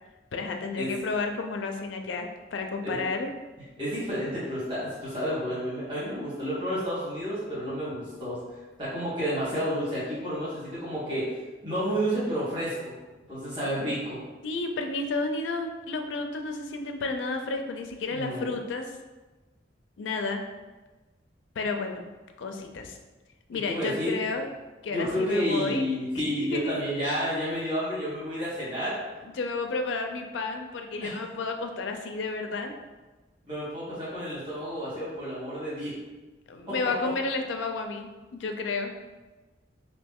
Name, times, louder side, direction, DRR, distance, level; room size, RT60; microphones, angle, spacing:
voice 1, 0.3-3.3 14.4-18.9 20.0-20.4 21.6-22.0 22.4-23.0 23.5-24.5 24.8-25.9 26.1-26.7 29.4-32.7 36.5-38.9, left 3 dB, 90° left, 4 dB, 0.4 m, -31 dB
voice 2, 3.8-8.4 8.8-11.3 11.6-12.9 13.3-14.2 18.1-18.5 23.7-24.1 24.9-29.0 31.0-31.1 33.4-36.0 36.7-36.8, equal, 25° right, -11 dB, 1.4 m, -30 dB
3.1 x 2.7 x 3.4 m, 1.2 s
head